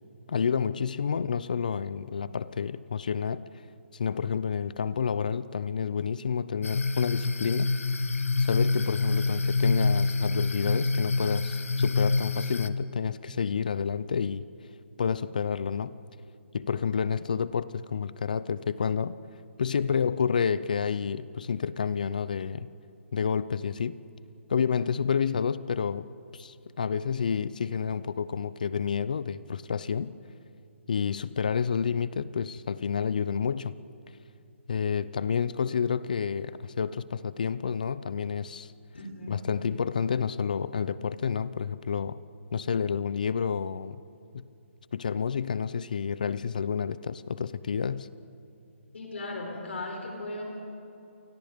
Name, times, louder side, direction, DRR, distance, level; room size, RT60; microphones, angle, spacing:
voice 1, 0.3-3.4 3.9-7.7 8.4-14.4 15.0-15.9 16.5-19.1 19.6-22.7 23.1-24.0 24.5-26.1 26.3-30.2 30.9-33.8 34.7-38.7 39.3-42.2 42.5-44.0 44.3-44.5 44.9-48.1, left 6 dB, 35° left, 17 dB, 0.5 m, -29 dB
sound 1, 6.6-12.7, left 3 dB, 80° left, 1.2 m, -26 dB
voice 2, 38.9-39.3 48.9-50.4, left 2 dB, 55° left, 1 dB, 4.5 m, -37 dB
30.0 x 24.0 x 5.2 m, 2.7 s
hypercardioid pair, 175°, 7 cm